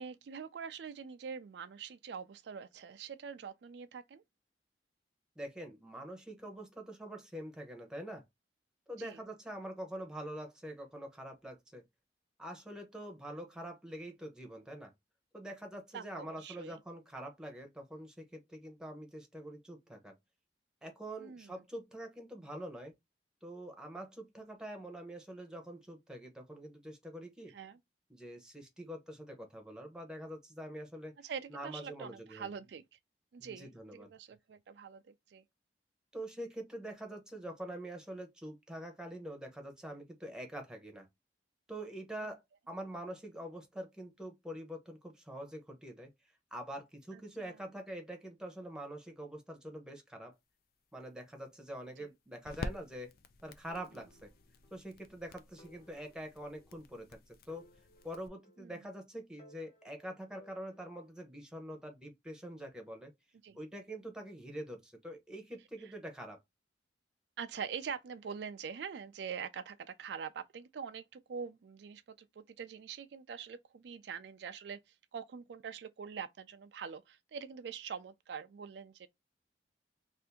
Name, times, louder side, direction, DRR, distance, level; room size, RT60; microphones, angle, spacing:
voice 1, 0.0-4.2 9.0-9.2 15.9-16.8 21.2-21.6 27.5-27.8 31.2-32.8 33.3-35.4 47.1-47.6 52.0-52.1 58.6-58.8 63.4-63.6 65.8-65.9 67.4-79.1, right 6 dB, 70° right, 0.4 m, -44 dB
voice 2, 5.4-8.2 8.9-11.8 12.4-14.9 15.3-20.1 20.8-22.9 23.4-27.5 28.1-32.5 33.4-34.1 36.1-41.1 41.7-42.4 42.7-46.1 46.5-50.3 50.9-53.1 53.4-54.3 54.7-57.6 58.0-63.1 63.5-66.4, right 1 dB, 5° right, 0.8 m, -45 dB
sound 1, 50.4-58.3, left 2 dB, 55° left, 0.4 m, -49 dB
sound 2, 53.7-54.8 55.1-55.2 55.6-57.1 57.5-58.9 59.4-61.2, left 1 dB, 35° left, 0.8 m, -62 dB
2.7 x 2.5 x 3.4 m
head